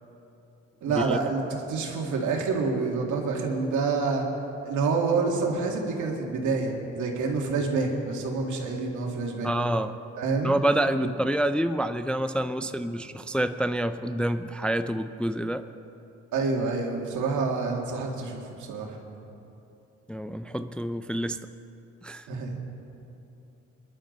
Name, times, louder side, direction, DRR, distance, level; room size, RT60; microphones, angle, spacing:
voice 1, 0.8-4.3 4.6-9.5 10.2-10.5 16.3-19.0 22.3-22.6, right 4 dB, 75° right, 0 dB, 2.3 m, -27 dB
voice 2, 9.4-10.0 10.4-15.6 20.1-21.4 22.0-22.3, right 1 dB, 5° left, 10 dB, 0.4 m, -27 dB
22.0 x 11.5 x 4.0 m, 2.8 s
cardioid pair, 90°, 30 cm